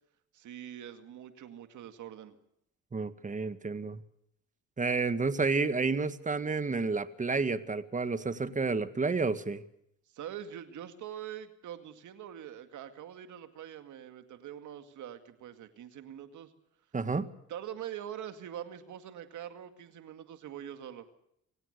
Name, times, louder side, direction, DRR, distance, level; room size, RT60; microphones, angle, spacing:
voice 1, 0.3-2.3 10.1-16.5 17.1-21.1, right 10 dB, 75° right, 8 dB, 2.2 m, -44 dB
voice 2, 2.9-4.0 4.8-9.6 16.9-17.3, right 4 dB, 25° right, 12 dB, 1.7 m, -30 dB
25.5 x 17.0 x 6.7 m, 0.75 s
cardioid pair, 90°, 30 cm